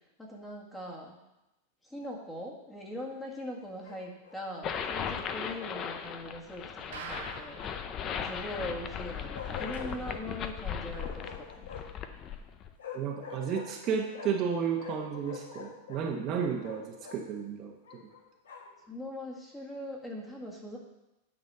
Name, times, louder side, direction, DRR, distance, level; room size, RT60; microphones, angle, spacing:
voice 1, 0.2-1.2 1.8-7.7 8.1-11.7 18.9-20.8, left 1 dB, 10° left, -2 dB, 1.7 m, -41 dB
Bark, 3.8-4.5 6.9-8.0 9.3-10.2 10.9-12.0 12.8-14.5 14.8-17.2 17.8-18.8, left 6 dB, 85° left, 1.8 m, -46 dB
sound 1, 4.6-12.7, left 7 dB, 30° left, 0.6 m, -37 dB
sound 2, 6.9-7.8 8.1-8.2 8.5-8.6 9.1-9.2, right 7 dB, 75° right, 0.9 m, -43 dB
voice 2, 12.9-16.8 17.1-18.1, right 7 dB, 35° right, 1 dB, 1.1 m, -32 dB
9.5 x 4.2 x 6.6 m, 0.94 s
supercardioid pair, 140°, 0 cm